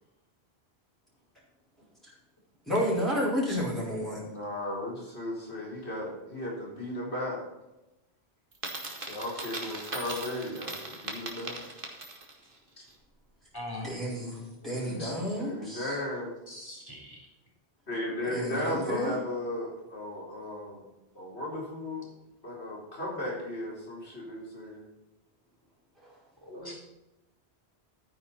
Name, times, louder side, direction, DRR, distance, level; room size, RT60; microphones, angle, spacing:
voice 1, 2.7-4.2 13.8-16.0 18.2-19.1 26.0-26.2, equal, ahead, -8 dB, 5.0 m, -31 dB
voice 2, 4.1-7.4 9.0-11.6 14.6-16.3 17.9-20.8 21.1-22.1 22.4-24.9 26.5-26.7, left 1 dB, 90° left, -3 dB, 4.3 m, -36 dB
Coin (dropping), 8.5-12.4, right 2 dB, 55° right, 2.1 m, -39 dB
voice 3, 13.5-13.9 16.5-17.2 26.4-26.8, left 1 dB, 20° left, -3 dB, 4.2 m, -41 dB
13.0 x 9.9 x 4.3 m, 0.97 s
omnidirectional pair, 1.1 m